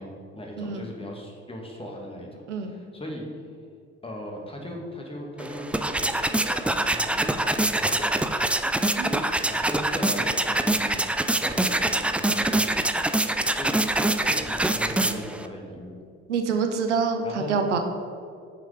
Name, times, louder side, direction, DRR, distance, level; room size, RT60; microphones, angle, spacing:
voice 1, 0.0-3.3 4.0-8.4 9.4-11.1 11.4-13.0 13.5-13.8 14.1-16.0 17.2-17.5, equal, 15° left, 0 dB, 2.2 m, -38 dB
voice 2, 0.6-0.9 2.5-2.7 9.0-9.3 16.3-17.8, right 5 dB, 80° right, 6 dB, 0.8 m, -26 dB
sound 1, 5.4-15.5, right 1 dB, 5° right, 0.4 m, -25 dB
9.8 x 6.4 x 5.0 m, 2.3 s
figure-of-eight pair, 50°, 35 cm